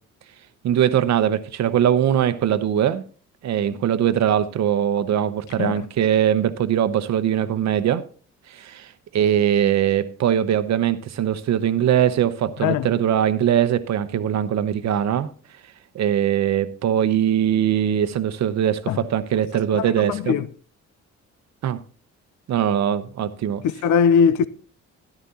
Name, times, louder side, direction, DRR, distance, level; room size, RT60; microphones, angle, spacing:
voice 1, 0.6-3.0 3.4-8.0 8.5-15.3 15.9-20.3 21.6-21.8 22.5-23.6, right 10 dB, 65° right, 0.9 m, -21 dB
voice 2, 20.1-20.5 23.8-24.5, left 7 dB, 80° left, 0.6 m, -19 dB
13.0 x 11.0 x 2.9 m
cardioid pair, 90°, 30 cm